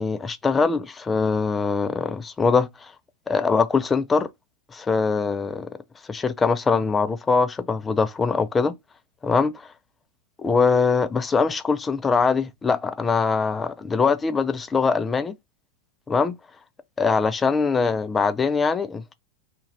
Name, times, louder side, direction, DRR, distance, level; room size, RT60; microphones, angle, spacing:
voice 1, 0.0-2.7 3.3-4.3 4.7-5.8 6.1-8.7 9.2-9.5 10.4-15.3 16.1-16.4 17.0-19.1, left 4 dB, 15° left, 0.3 m, -22 dB
2.4 x 2.1 x 3.1 m
figure-of-eight pair, 90°, 0 cm